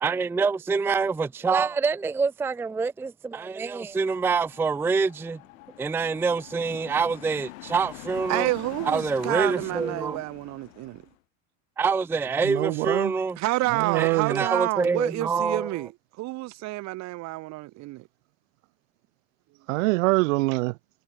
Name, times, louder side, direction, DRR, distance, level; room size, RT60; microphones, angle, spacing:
voice 1, 0.0-5.4 5.8-8.5 8.8-10.2 11.8-13.4 13.9-15.9, right 5 dB, 5° right, 0.5 m, -26 dB
sound 1, 3.7-11.1, left 21 dB, 85° left, 4.5 m, -44 dB
voice 2, 8.3-11.0 13.4-15.9 16.2-18.0, right 20 dB, 45° right, 1.2 m, -29 dB
voice 3, 12.4-13.1 13.7-14.4 19.7-20.8, right 24 dB, 80° right, 3.4 m, -24 dB
cardioid pair, 150°, 39 cm